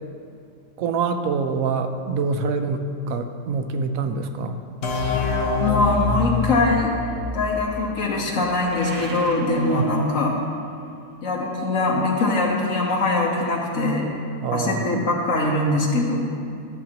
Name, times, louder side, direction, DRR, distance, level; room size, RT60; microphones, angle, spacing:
voice 1, 0.8-4.6 9.7-9.8 14.4-14.9, right 4 dB, 70° right, 7 dB, 1.0 m, -25 dB
sound 1, 4.8-8.4, left 4 dB, 80° left, 1.5 m, -26 dB
voice 2, 5.6-6.9 7.3-10.4 11.2-14.1 14.5-16.3, left 2 dB, 65° left, -2 dB, 1.3 m, -22 dB
sound 2, 8.3-10.5, right 2 dB, 50° right, 0.6 m, -39 dB
13.5 x 7.3 x 2.9 m, 2.4 s
omnidirectional pair, 1.6 m